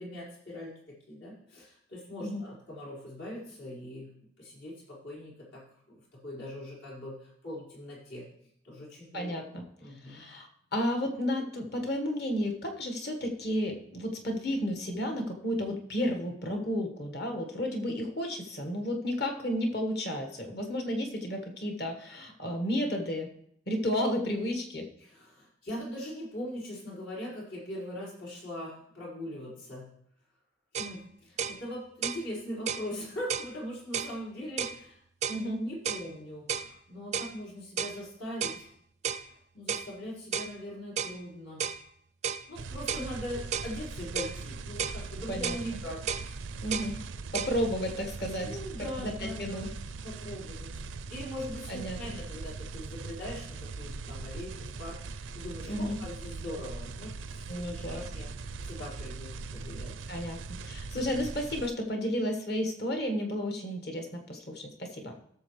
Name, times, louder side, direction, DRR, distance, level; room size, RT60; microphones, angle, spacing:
voice 1, 0.0-4.1 4.4-8.3 8.6-9.4 9.8-10.3 25.0-29.9 30.8-35.0 35.3-38.7 39.5-41.6 42.5-46.0 48.4-49.7 50.0-50.7 51.1-60.0, left 1 dB, 80° left, -6 dB, 4.6 m, -41 dB
voice 2, 9.1-9.6 10.0-23.3 23.7-24.9 35.3-35.6 45.3-45.6 46.6-47.0 47.3-48.5 49.0-49.7 51.7-52.0 55.7-56.0 57.5-58.0 60.1-65.1, equal, 55° left, 4 dB, 1.5 m, -32 dB
sound 1, 30.7-31.0 31.4-31.6 32.0-32.2 32.7-32.9 33.3-33.5 33.9-34.1 34.6-34.8 35.2-35.4 35.8-36.1 36.5-36.7 37.1-37.3 37.8-38.0 38.4-38.6 39.0-39.3 39.7-39.9 40.3-40.5 41.0-41.2 41.6-41.8 42.2-42.4 42.9-43.1 43.5-43.7 44.1-44.4 44.8-45.0 45.4-45.6 46.1-46.3 46.7-46.9 47.3-47.5, right 7 dB, 35° right, 0.4 m, -33 dB
sound 2, 42.5-61.7, right 4 dB, 90° right, 0.5 m, -41 dB
16.5 x 6.8 x 3.2 m, 0.68 s
head